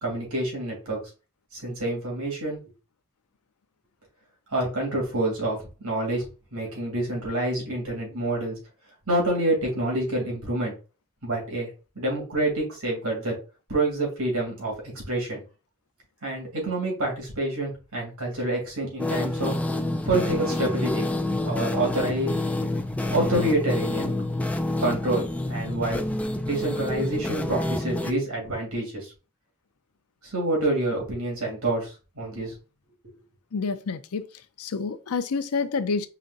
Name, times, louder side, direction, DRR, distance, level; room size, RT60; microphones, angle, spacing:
voice 1, 0.0-1.0 1.5-2.6 4.5-6.2 6.5-8.6 9.1-10.7 11.2-11.7 11.9-13.4 13.7-14.7 15.1-15.4 16.2-19.6 20.1-21.0 21.4-22.3 23.1-24.1 24.8-26.0 26.4-29.1 30.2-32.5, right 1 dB, 80° right, 2.8 m, -27 dB
sound 1, 19.0-28.1, left 1 dB, 5° left, 0.4 m, -28 dB
voice 2, 33.5-34.3 34.6-36.1, left 4 dB, 85° left, 0.5 m, -28 dB
4.9 x 2.5 x 4.0 m
head